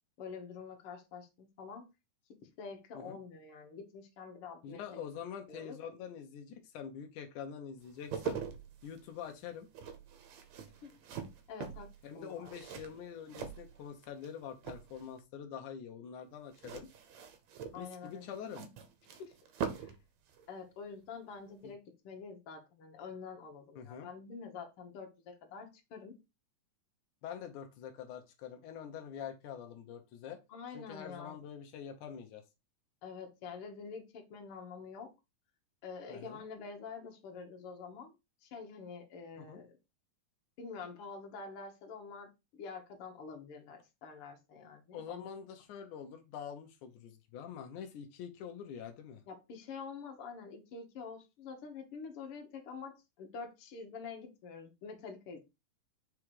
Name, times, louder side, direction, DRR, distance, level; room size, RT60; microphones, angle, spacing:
voice 1, 0.2-1.9 2.6-5.0 5.5-5.8 10.8-10.9 11.5-11.9 12.1-12.5 17.7-18.3 19.0-19.3 19.8-19.9 20.5-26.2 30.5-31.3 33.0-35.1 35.8-38.1 38.4-39.8 40.6-45.2 49.3-55.4, left 5 dB, 55° left, 2.2 m, -47 dB
voice 2, 4.6-8.4 8.8-9.7 12.0-16.9 17.8-18.6 21.6-21.7 23.8-24.1 27.2-30.4 30.7-32.4 36.1-36.4 39.4-39.6 44.9-49.2, left 8 dB, 85° left, 2.3 m, -45 dB
sound 1, 7.8-14.3 14.6-15.2 16.5-20.0 20.3-20.5, right 7 dB, 70° right, 2.0 m, -43 dB
4.9 x 4.8 x 4.7 m
omnidirectional pair, 3.4 m